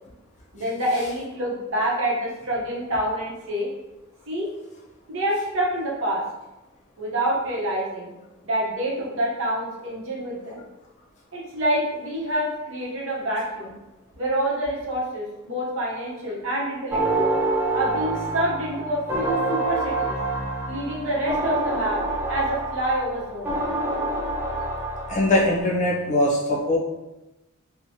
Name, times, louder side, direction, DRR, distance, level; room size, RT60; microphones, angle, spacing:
voice 1, 0.5-3.7 4.3-4.5 5.1-6.2 7.0-8.1 8.4-10.6 11.3-13.8 14.2-17.3 17.7-20.2 20.7-22.0 22.3-23.6, right 1 dB, 65° right, -4 dB, 0.8 m, -27 dB
sound 1, 16.9-25.6, right 2 dB, 10° right, 0.4 m, -27 dB
voice 2, 25.1-26.8, left 1 dB, 35° left, -4 dB, 0.6 m, -21 dB
3.0 x 2.1 x 2.7 m, 1.0 s
head